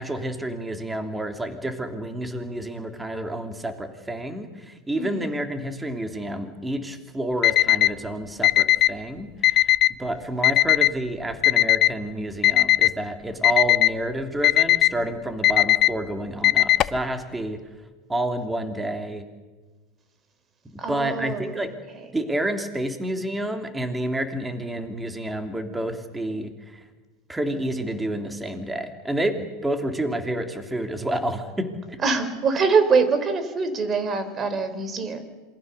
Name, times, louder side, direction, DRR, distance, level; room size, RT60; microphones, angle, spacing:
voice 1, 0.0-17.6 18.1-19.2 20.9-21.7 22.1-26.8 27.3-32.0, right 1 dB, 10° right, 6 dB, 3.2 m, -29 dB
voice 2, 5.0-5.4 20.8-21.4 32.0-35.2, right 4 dB, 30° right, 11 dB, 4.2 m, -23 dB
Alarm, 7.4-7.9 8.4-8.9 9.4-9.9 10.4-10.9 11.4-11.9 12.4-12.9 13.4-13.9 14.4-14.9 15.4-15.9 16.4-17.0, left 14 dB, 45° left, 0.8 m, -17 dB
27.5 x 21.5 x 6.9 m, 1.3 s
hypercardioid pair, 100°, 0 cm